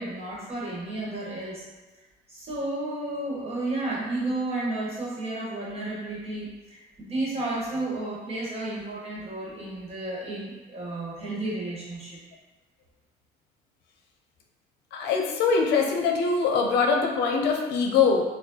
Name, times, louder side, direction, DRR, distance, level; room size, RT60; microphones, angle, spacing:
voice 1, 0.0-1.6 2.3-12.2, right 2 dB, 35° right, -5 dB, 1.3 m, -32 dB
voice 2, 14.9-18.2, left 5 dB, 80° left, 2 dB, 0.6 m, -23 dB
4.2 x 2.2 x 2.8 m, 1.2 s
cardioid pair, 110°, 17 cm